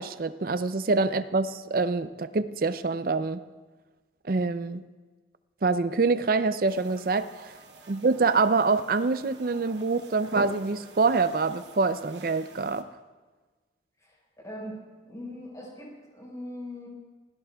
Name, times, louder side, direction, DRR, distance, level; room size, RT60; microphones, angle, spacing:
voice 1, 0.0-3.4 4.3-4.8 5.6-7.3 7.9-12.9, right 4 dB, 50° right, 13 dB, 0.5 m, -25 dB
sound 1, 6.7-12.8, right 2 dB, 70° right, 1.1 m, -45 dB
voice 2, 14.4-16.9, left 1 dB, 20° left, -3 dB, 4.8 m, -41 dB
25.0 x 16.5 x 2.3 m, 1.3 s
head